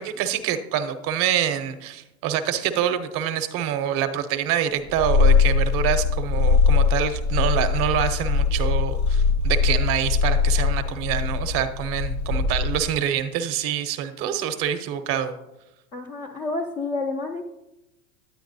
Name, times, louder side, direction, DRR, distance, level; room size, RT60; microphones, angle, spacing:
voice 1, 0.0-15.3, right 9 dB, 35° right, 9 dB, 0.6 m, -26 dB
Purr, 4.9-13.0, left 5 dB, 85° left, 1.5 m, -21 dB
voice 2, 15.9-17.4, left 3 dB, 20° left, 1 dB, 0.3 m, -29 dB
9.2 x 9.0 x 2.6 m, 0.92 s
hypercardioid pair, 130°, 43 cm